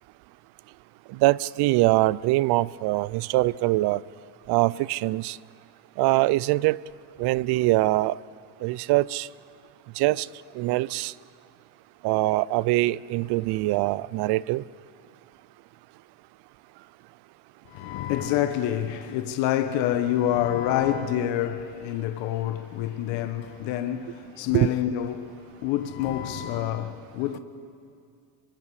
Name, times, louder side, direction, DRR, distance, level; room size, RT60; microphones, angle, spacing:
voice 1, 1.1-4.0 4.5-5.4 6.0-6.8 7.2-8.2 8.6-9.3 10.0-10.3 10.5-11.1 12.0-14.6 24.5-24.7, right 19 dB, 55° right, 0.5 m, -23 dB
voice 2, 17.7-27.4, left 11 dB, 65° left, 1.3 m, -27 dB
27.5 x 24.0 x 4.9 m
supercardioid pair, 85°, 48 cm